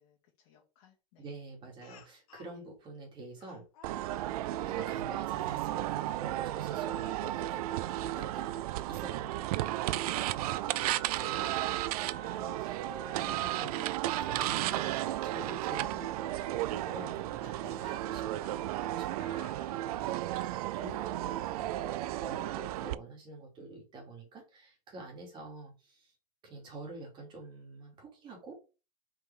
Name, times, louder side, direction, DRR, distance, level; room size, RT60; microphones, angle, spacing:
voice 1, 0.0-1.3 2.5-2.7 4.2-4.5 8.0-8.2 9.3-10.4 11.9-12.5 20.8-21.0, left 9 dB, 50° left, -4 dB, 2.3 m, -65 dB
voice 2, 1.2-3.7 4.6-11.3 12.1-12.3 12.5-12.9 13.2-18.2 18.5-26.1 26.4-28.6, right 2 dB, 25° right, -1 dB, 3.1 m, -48 dB
Speech, 1.8-2.6 3.4-4.4 5.3-5.6 6.9-7.1 7.6-7.7 9.3-9.4 10.2-11.1 12.4-12.5 12.9-13.0 14.8-14.9 15.6-15.8 16.9-20.2, left 7 dB, 70° left, 1.6 m, -59 dB
sound 1, 3.8-22.9, right 14 dB, 90° right, 0.5 m, -34 dB
Wind instrument woodwind instrument, 10.3-12.6 12.9-16.5, right 6 dB, 70° right, 2.2 m, -50 dB
5.4 x 5.2 x 3.8 m, 0.31 s
supercardioid pair, 170°, 19 cm